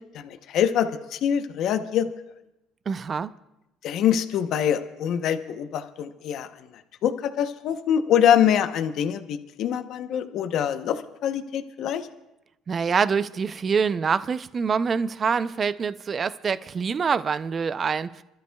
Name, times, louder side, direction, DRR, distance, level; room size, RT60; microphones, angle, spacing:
voice 1, 0.1-2.1 3.8-6.5 7.0-12.1, left 9 dB, 60° left, 0.9 m, -24 dB
voice 2, 2.9-3.3 12.7-18.2, right 6 dB, 35° right, 0.5 m, -25 dB
28.0 x 13.0 x 2.3 m
cardioid pair, 105°, 0 cm